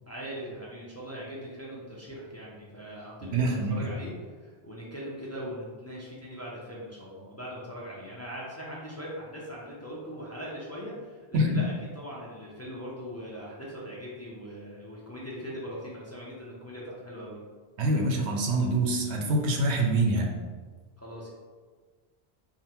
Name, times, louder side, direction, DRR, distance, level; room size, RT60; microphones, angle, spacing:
voice 1, 0.1-17.4 21.0-21.3, equal, 15° left, -5 dB, 0.6 m, -40 dB
voice 2, 3.3-3.8 11.3-11.5 17.8-20.3, right 2 dB, 85° right, 1 dB, 0.9 m, -25 dB
3.7 x 2.2 x 4.3 m, 1.5 s
omnidirectional pair, 1.1 m